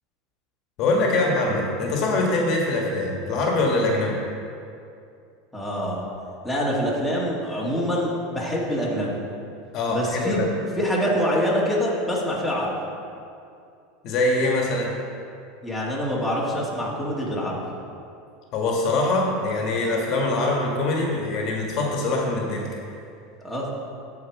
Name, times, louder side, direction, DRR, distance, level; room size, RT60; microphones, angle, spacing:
voice 1, 0.8-4.1 9.7-10.5 14.0-14.9 18.5-22.7, left 2 dB, 50° left, -1 dB, 1.5 m, -23 dB
voice 2, 5.5-6.1 6.4-9.1 9.9-10.5 10.8-12.8 15.6-17.6 23.4-23.7, equal, ahead, -6 dB, 1.9 m, -25 dB
14.0 x 4.8 x 4.7 m, 2.5 s
supercardioid pair, 140°, 0 cm